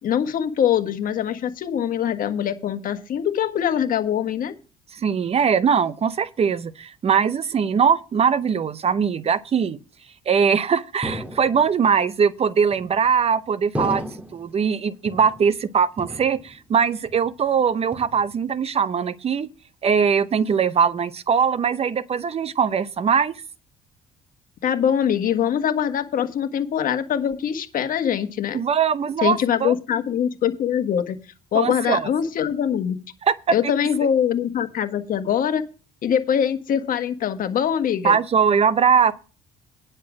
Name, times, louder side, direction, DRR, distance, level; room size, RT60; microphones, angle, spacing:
voice 1, 0.0-4.5 24.6-28.6 29.2-31.2 31.5-33.0 33.5-35.6 36.0-38.2, left 9 dB, 55° left, 1.5 m, -23 dB
voice 2, 4.9-9.8 10.3-19.5 19.8-23.4 28.5-29.7 31.5-32.1 33.2-33.5 38.0-39.1, right 6 dB, 35° right, 0.7 m, -21 dB
sound 1, 11.0-11.9 12.7-13.2 13.7-14.5 15.1-15.7 16.0-16.8 17.0-17.5 17.9-18.5, equal, 10° right, 2.4 m, -34 dB
10.5 x 6.6 x 6.1 m
cardioid pair, 110°, 17 cm